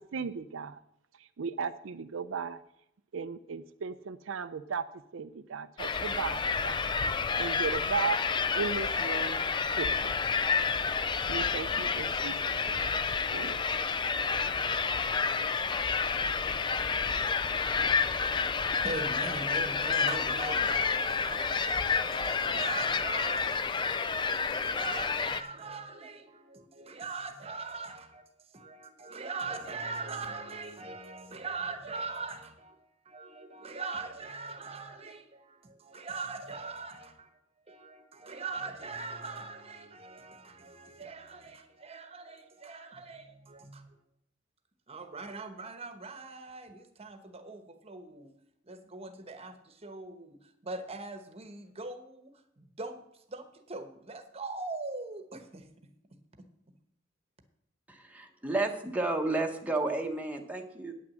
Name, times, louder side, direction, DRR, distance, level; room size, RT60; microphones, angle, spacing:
voice 1, 0.1-0.8 1.4-2.6 3.1-4.8 5.1-6.8 7.4-8.2 8.5-10.1 11.3-12.4 12.7-12.8 13.3-13.6, right 5 dB, 85° right, 11 dB, 0.5 m, -36 dB
sound 1, 5.8-25.4, left 5 dB, 25° left, 0.3 m, -29 dB
voice 2, 18.8-28.2 28.5-37.3 37.7-43.9 44.9-48.3 48.7-50.4 50.6-53.0 53.3-55.7, right 3 dB, 30° right, 7 dB, 1.1 m, -41 dB
voice 3, 57.9-60.9, right 2 dB, 10° right, 2 dB, 1.1 m, -32 dB
9.4 x 6.0 x 7.6 m, 0.76 s
head